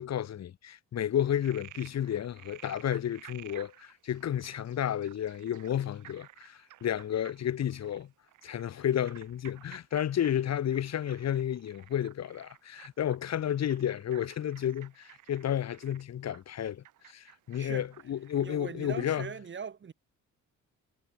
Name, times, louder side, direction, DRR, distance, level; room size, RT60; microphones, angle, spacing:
voice 1, 0.0-8.1 8.4-19.3, left 10 dB, 60° left, 1.8 m, -32 dB
Frog, 1.2-18.6, right 14 dB, 80° right, 3.6 m, -54 dB
voice 2, 17.5-17.9 18.4-19.9, right 6 dB, 40° right, 1.8 m, -40 dB
cardioid pair, 90°, 30 cm